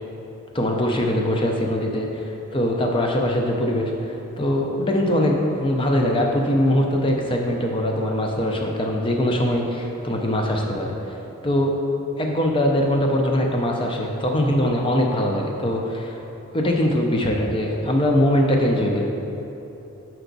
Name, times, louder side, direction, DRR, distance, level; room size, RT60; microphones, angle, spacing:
voice 1, 0.5-11.2 11.4-11.8 12.2-16.2 16.5-19.1, left 1 dB, 25° left, 1 dB, 0.5 m, -22 dB
7.0 x 4.6 x 3.9 m, 3.0 s
head